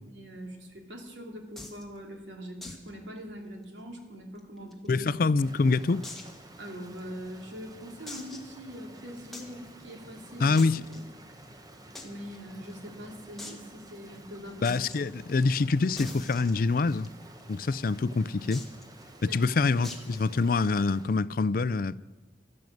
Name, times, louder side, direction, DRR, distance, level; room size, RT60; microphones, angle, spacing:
voice 1, 0.1-5.2 6.6-10.6 10.9-11.0 12.0-14.7 15.2-15.3 19.2-19.4, equal, 85° right, 2.8 m, -43 dB
sound 1, 1.6-1.8 2.6-2.9 3.2-3.3 3.6-3.7 4.4-5.2 6.0-6.4 7.0-7.1 8.1-8.5 9.3-9.5 10.6-11.0 11.9-12.1 12.3-12.4 12.7-12.8 13.4-13.6 14.6-15.0 16.0-17.1 18.5-18.8 19.8-20.2, left 2 dB, ahead, 1.6 m, -43 dB
voice 2, 4.9-6.0 10.4-10.8 14.6-17.1 17.5-18.6 19.3-22.0, left 4 dB, 50° left, 0.4 m, -25 dB
Rain, 5.4-21.2, right 1 dB, 20° right, 1.0 m, -51 dB
12.0 x 12.0 x 7.8 m
head